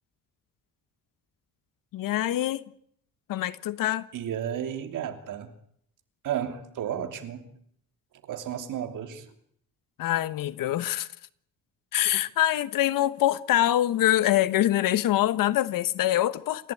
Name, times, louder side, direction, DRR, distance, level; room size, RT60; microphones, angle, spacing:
voice 1, 1.9-2.6 3.3-4.1 10.0-11.1 11.9-16.7, left 13 dB, 85° left, 1.3 m, -24 dB
voice 2, 4.1-5.5 6.2-7.5 8.2-9.3, right 9 dB, 70° right, 3.0 m, -33 dB
28.5 x 15.5 x 8.7 m
cardioid pair, 155°, 32 cm